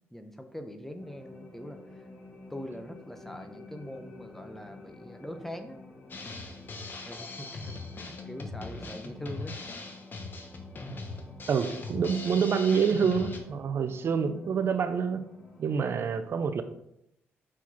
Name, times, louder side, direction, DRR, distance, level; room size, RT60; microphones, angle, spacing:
voice 1, 0.1-2.1 2.5-5.8 7.0-9.6, equal, 5° left, 6 dB, 0.8 m, -42 dB
sound 1, 1.0-15.8, left 2 dB, 25° left, 1.9 m, -50 dB
Drum kit, 6.1-13.4, left 3 dB, 40° left, 1.2 m, -40 dB
voice 2, 11.5-15.2 15.6-16.6, right 6 dB, 55° right, 10 dB, 0.5 m, -27 dB
5.9 x 4.8 x 4.2 m, 0.79 s
cardioid pair, 85°, 5 cm